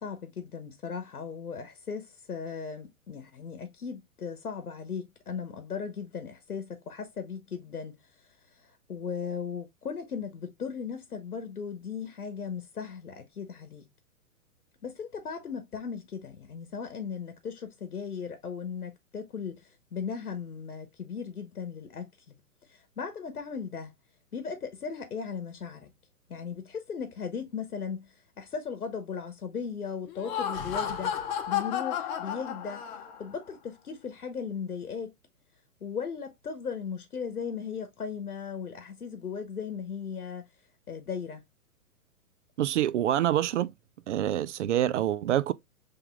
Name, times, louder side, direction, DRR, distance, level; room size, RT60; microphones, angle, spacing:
voice 1, 0.0-8.0 8.5-13.9 14.8-22.4 22.6-23.9 24.3-25.9 26.3-31.1 31.5-32.8 33.2-35.1 35.8-40.4 40.9-41.4, left 6 dB, 90° left, 1.0 m, -37 dB
Laughter, 30.1-33.3, left 9 dB, 30° left, 0.8 m, -32 dB
voice 2, 42.6-43.7 44.1-45.5, right 12 dB, 55° right, 0.5 m, -26 dB
5.7 x 3.3 x 2.2 m
hypercardioid pair, 125°, 43 cm